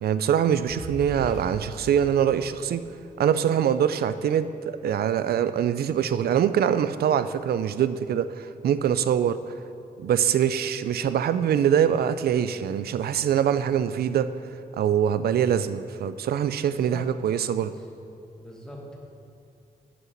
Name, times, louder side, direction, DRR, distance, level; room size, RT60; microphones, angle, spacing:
voice 1, 0.0-2.8 3.2-9.5 10.0-14.3 14.8-17.7, right 9 dB, 80° right, 13 dB, 0.4 m, -24 dB
Fire, 0.6-3.0, equal, 45° left, 2.1 m, -40 dB
voice 2, 16.6-17.1 18.4-19.0, equal, 5° left, -2 dB, 1.3 m, -43 dB
9.6 x 5.7 x 5.9 m, 2.5 s
wide cardioid pair, 150°, 16 cm